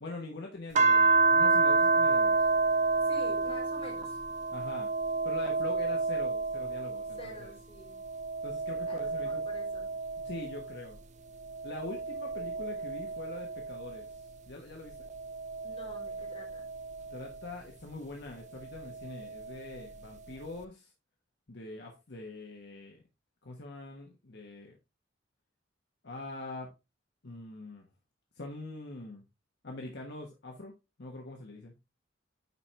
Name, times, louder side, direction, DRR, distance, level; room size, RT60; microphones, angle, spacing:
voice 1, 0.0-2.4 4.5-4.9 5.2-7.5 8.4-9.4 10.2-11.0 11.6-14.1 14.5-15.1 17.1-20.9 21.5-23.0 23.4-24.8 26.0-26.7 27.2-27.9 28.4-29.2 29.6-30.7 31.0-31.7, left 2 dB, 60° left, 1 dB, 1.2 m, -43 dB
sound 1, 0.8-7.5 7.9-10.8 11.4-14.2 14.9-17.4 18.7-19.8, right 3 dB, 40° right, 0.6 m, -30 dB
voice 2, 3.0-4.2 7.2-8.0 8.9-10.0 15.6-16.6, left 1 dB, 30° left, -1 dB, 3.6 m, -48 dB
9.8 x 4.4 x 3.3 m, 0.26 s
head